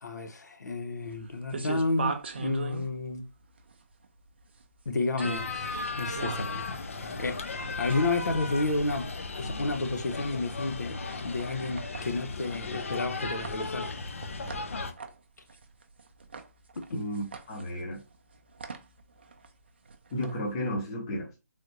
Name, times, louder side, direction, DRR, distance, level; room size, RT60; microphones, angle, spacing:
voice 1, 0.0-3.2 4.9-6.7 7.0-9.1 9.3-13.9 16.9-17.0, left 2 dB, 90° left, 0.7 m, -31 dB
sound 1, 1.0-20.7, right 5 dB, 40° right, 0.4 m, -42 dB
sound 2, 5.2-14.9, left 3 dB, 50° left, 0.5 m, -36 dB
voice 2, 16.9-18.0 20.1-21.3, equal, 15° left, 0.8 m, -33 dB
3.4 x 2.5 x 2.8 m
hypercardioid pair, 170°, 9 cm